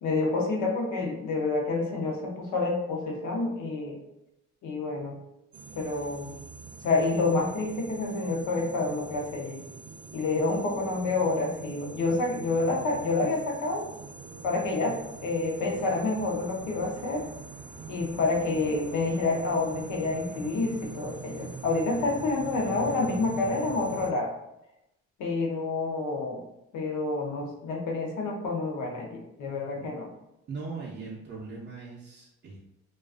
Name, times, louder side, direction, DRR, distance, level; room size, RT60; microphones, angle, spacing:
voice 1, 0.0-4.0 4.6-5.2 5.7-6.4 6.8-9.6 10.1-13.9 14.4-17.2 17.9-24.3 25.2-26.4 26.7-30.1, left 3 dB, 75° left, 1 dB, 0.7 m, -28 dB
sound 1, 5.5-24.1, right 4 dB, 80° right, 0.6 m, -44 dB
voice 2, 10.3-10.9 14.9-15.1 29.8-29.9 30.5-32.6, right 4 dB, 35° right, -4 dB, 0.5 m, -40 dB
2.4 x 2.3 x 2.4 m, 0.87 s
cardioid pair, 90°, 30 cm